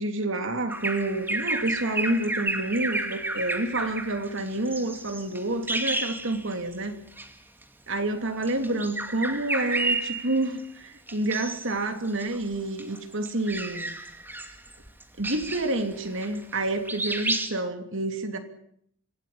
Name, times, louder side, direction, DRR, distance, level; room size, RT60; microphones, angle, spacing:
voice 1, 0.0-7.0 7.9-13.9 15.2-18.4, right 2 dB, 65° right, 7 dB, 3.0 m, -29 dB
Bird vocalization bird call bird song, 0.7-6.8 7.1-7.3 8.3-10.6 11.1-11.7 12.1-16.6 16.9-17.5, right 2 dB, 10° right, 2.3 m, -31 dB
26.0 x 17.5 x 8.8 m, 0.68 s
head